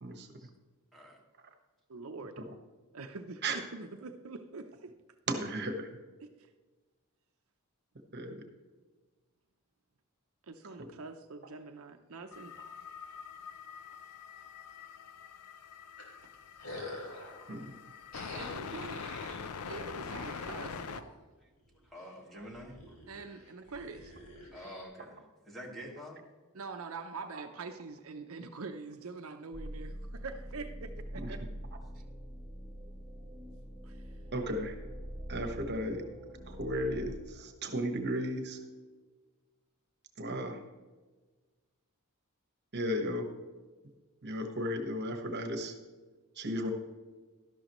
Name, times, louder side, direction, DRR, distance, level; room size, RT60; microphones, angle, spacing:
voice 1, 1.9-2.4 2.9-4.9 6.2-6.5 10.4-12.5 18.3-19.0 19.7-20.8 23.1-24.3 26.5-31.4 33.8-34.2, right 4 dB, 70° right, 6 dB, 0.7 m, -44 dB
voice 2, 5.3-5.9 8.1-8.4 17.5-17.7 20.9-21.0 31.1-31.3 34.3-34.7 35.3-36.0 36.5-38.6 40.2-40.6 42.7-43.3 44.2-45.7 46.4-46.7, equal, 50° right, 6 dB, 1.3 m, -34 dB
sound 1, 12.3-21.0, left 6 dB, 90° left, 0.6 m, -44 dB
sound 2, 16.0-17.4 18.1-21.1 21.6-22.0 22.4-24.8, left 1 dB, 70° left, 3.3 m, -47 dB
voice 3, 21.8-23.0 24.5-26.2, equal, ahead, -2 dB, 2.1 m, -47 dB
sound 3, 29.5-37.2, equal, 25° right, 2.7 m, -44 dB
12.5 x 11.5 x 3.1 m, 1.3 s
head